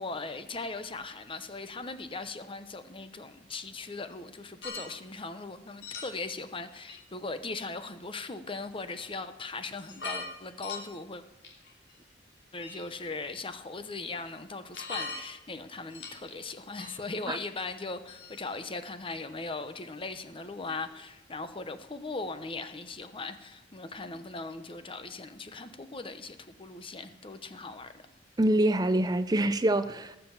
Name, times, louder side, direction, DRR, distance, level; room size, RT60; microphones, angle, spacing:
voice 1, 0.0-11.2 12.5-27.9, left 3 dB, 30° left, 1.0 m, -39 dB
sound 1, 4.6-4.9 5.8-6.3 6.9-7.0 8.1-8.3 9.2-9.3 9.7-10.3 10.6-10.8 11.4-11.9 12.6-13.0 14.7-15.2 15.9-16.3 16.8-17.0 17.6-17.7 18.1-18.6, left 4 dB, 75° left, 3.1 m, -40 dB
voice 2, 28.4-30.2, right 1 dB, 20° right, 0.5 m, -25 dB
18.5 x 6.9 x 7.3 m
head